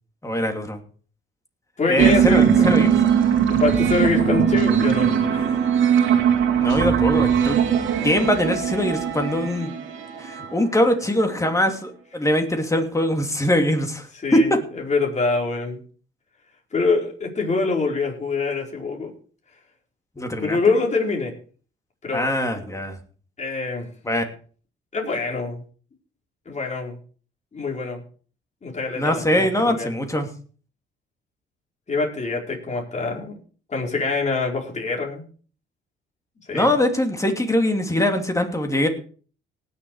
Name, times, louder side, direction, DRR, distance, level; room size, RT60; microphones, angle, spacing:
voice 1, 0.2-0.8 1.9-3.0 6.6-7.6 8.0-9.7 10.2-14.1 14.3-14.4 20.2-20.6 22.1-23.0 24.0-24.2 28.9-30.3 36.5-38.9, left 1 dB, 15° left, 5 dB, 2.8 m, -22 dB
voice 2, 1.8-2.8 3.5-5.6 10.4-10.5 14.2-14.5 14.9-15.8 16.7-19.1 20.4-21.3 22.0-22.3 23.4-23.9 24.9-25.6 26.4-26.9 27.5-28.0 28.6-29.9 31.9-33.4 33.7-35.2 36.5-36.7, left 3 dB, 35° left, -1 dB, 4.8 m, -25 dB
sound 1, 2.0-11.0, right 8 dB, 80° right, 2.4 m, -20 dB
18.5 x 7.2 x 4.9 m, 0.42 s
cardioid pair, 90°, 20 cm